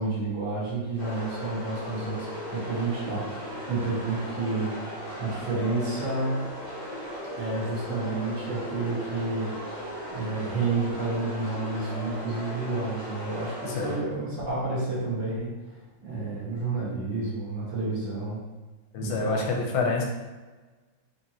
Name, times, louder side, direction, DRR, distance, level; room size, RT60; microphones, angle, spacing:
voice 1, 0.0-4.7 5.2-6.4 7.4-9.5 10.1-18.4 19.0-19.6, right 3 dB, 60° right, -7 dB, 2.1 m, -30 dB
sound 1, 1.0-14.0, equal, 65° left, 0.4 m, -37 dB
voice 2, 18.9-20.0, left 4 dB, 90° left, 1 dB, 1.6 m, -27 dB
5.1 x 3.2 x 2.8 m, 1.2 s
omnidirectional pair, 2.3 m